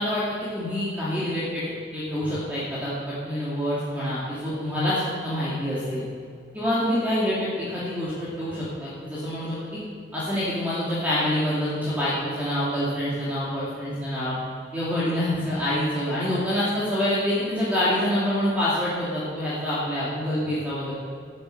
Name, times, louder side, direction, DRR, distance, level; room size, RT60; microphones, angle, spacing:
voice 1, 0.0-1.7 1.9-6.0 6.5-9.8 10.1-14.3 14.7-20.9, left 1 dB, 10° right, -10 dB, 2.8 m, -26 dB
12.0 x 10.5 x 6.7 m, 2.3 s
head